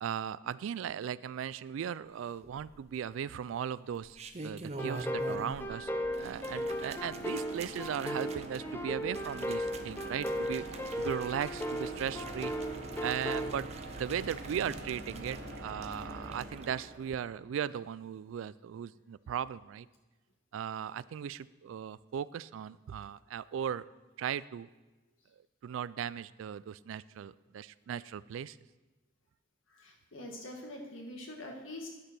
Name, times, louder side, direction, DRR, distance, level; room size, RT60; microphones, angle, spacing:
voice 1, 0.0-5.9 6.2-10.6 11.0-12.5 13.0-13.7 14.0-19.9 20.5-23.9 24.2-24.7 25.6-28.6, right 8 dB, 85° right, 19 dB, 0.3 m, -37 dB
sound 1, 2.4-3.1 3.9-5.7 6.0-16.7 17.0-17.2, right 3 dB, 35° right, 0.5 m, -47 dB
sound 2, 4.8-13.5, equal, 10° left, 0.6 m, -36 dB
sound 3, 4.9-17.6, right 1 dB, 50° right, 1.3 m, -46 dB
voice 2, 29.7-31.9, left 1 dB, 85° left, 1 dB, 1.7 m, -44 dB
9.6 x 6.6 x 6.0 m, 1.1 s
head